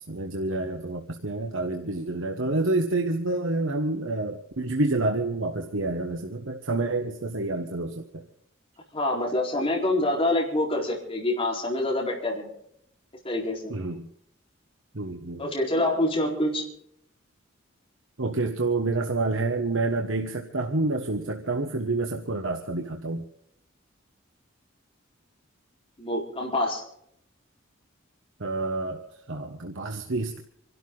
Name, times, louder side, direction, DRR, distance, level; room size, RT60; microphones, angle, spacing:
voice 1, 0.1-8.2 13.7-14.1 14.9-15.5 18.2-23.2 28.4-29.0 29.3-30.4, right 2 dB, 75° right, 3 dB, 1.3 m, -28 dB
voice 2, 8.9-12.5 13.2-13.7 15.4-16.6 26.0-26.8, left 1 dB, 30° left, -2 dB, 4.2 m, -26 dB
27.0 x 12.5 x 3.9 m, 0.73 s
head